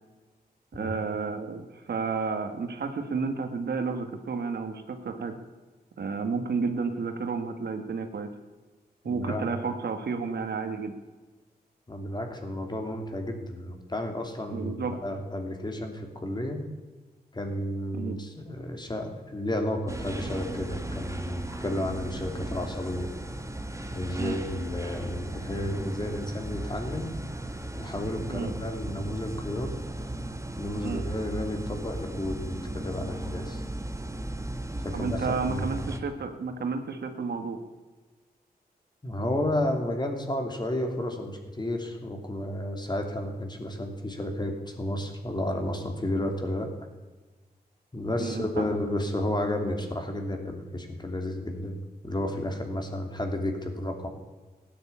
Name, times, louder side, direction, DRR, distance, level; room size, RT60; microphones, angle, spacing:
voice 1, 0.7-5.4 6.0-8.3 9.0-10.9 14.5-14.9 17.9-18.2 24.2-24.4 28.3-28.5 30.8-31.0 34.9-37.6 48.2-48.6, right 4 dB, 75° right, 6 dB, 1.8 m, -31 dB
voice 2, 9.0-9.5 11.9-16.6 17.3-23.1 23.9-27.2 27.8-29.8 30.6-33.6 34.8-35.8 39.0-46.7 47.9-54.1, left 1 dB, 25° left, 4 dB, 3.1 m, -32 dB
sound 1, 19.9-36.0, right 1 dB, 20° right, 1.9 m, -36 dB
16.5 x 10.0 x 8.6 m, 1.2 s
wide cardioid pair, 80°, 17 cm